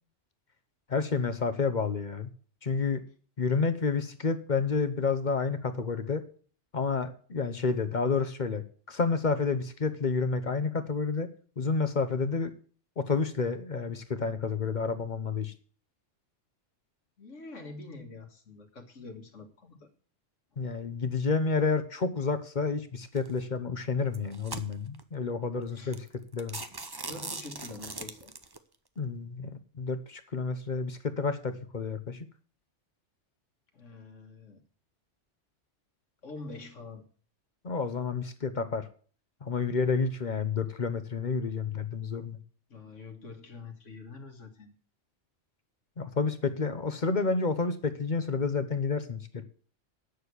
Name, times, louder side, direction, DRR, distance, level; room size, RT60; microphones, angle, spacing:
voice 1, 0.9-2.3 2.6-3.0 3.4-6.2 6.7-11.3 11.6-12.5 13.0-15.5 20.6-26.1 26.3-26.6 29.0-32.3 37.6-38.9 39.4-42.4 46.0-49.4, left 4 dB, 40° left, 10 dB, 1.0 m, -30 dB
voice 2, 17.2-19.9 25.7-26.0 27.1-28.3 33.7-34.6 36.2-37.1 42.7-44.7, left 3 dB, 85° left, 4 dB, 2.0 m, -45 dB
sound 1, 23.2-23.4 24.0-25.0 25.6-25.7 25.9-26.1 26.4-28.6, right 3 dB, 25° right, 0.7 m, -40 dB
9.8 x 6.6 x 8.2 m, 0.43 s
omnidirectional pair, 1.3 m